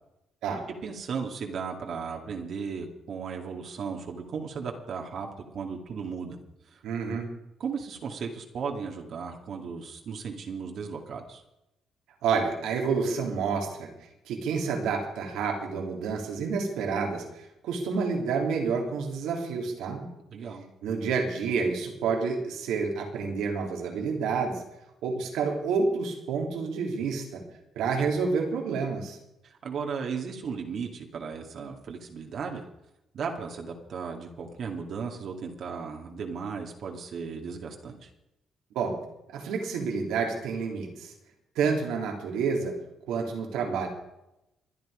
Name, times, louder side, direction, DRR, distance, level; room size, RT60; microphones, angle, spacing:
voice 1, 0.8-5.3 5.5-6.4 6.7-6.8 7.6-11.4 20.3-20.6 28.0-28.1 29.4-32.6 33.1-38.1, right 5 dB, 60° right, 2 dB, 2.3 m, -36 dB
voice 2, 6.8-7.3 12.2-13.9 14.3-20.1 20.8-24.6 25.0-27.4 27.7-29.2 38.7-39.0 39.3-41.1 41.5-42.7 43.1-43.9, right 5 dB, 90° right, 1 dB, 3.4 m, -29 dB
24.5 x 9.8 x 5.1 m, 0.89 s
cardioid pair, 90°, 0 cm